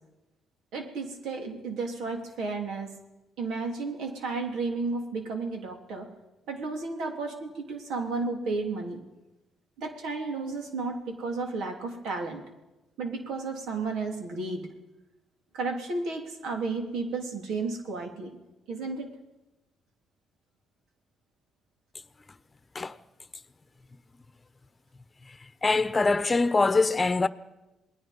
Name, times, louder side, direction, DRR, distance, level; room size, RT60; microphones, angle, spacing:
voice 1, 0.7-2.9 3.4-6.1 6.5-9.0 9.8-12.4 13.0-14.7 15.5-18.4 18.7-19.1, right 3 dB, 85° right, 3.7 m, -33 dB
voice 2, 25.6-27.3, left 3 dB, 25° left, 1.0 m, -23 dB
28.0 x 19.5 x 5.6 m
cardioid pair, 90°, 0 cm